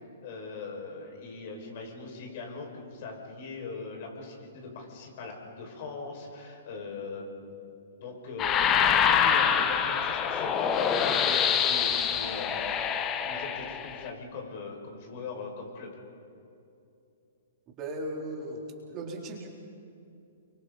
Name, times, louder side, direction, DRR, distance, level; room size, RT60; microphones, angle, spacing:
voice 1, 0.2-7.7 7.9-12.7 13.2-16.0, left 4 dB, 50° left, 1 dB, 5.6 m, -41 dB
sound 1, 8.4-14.1, left 8 dB, 25° left, 1.2 m, -25 dB
voice 2, 17.8-19.5, right 1 dB, 30° right, -1 dB, 3.4 m, -37 dB
29.0 x 24.0 x 4.1 m, 2.6 s
hypercardioid pair, 125°, 0 cm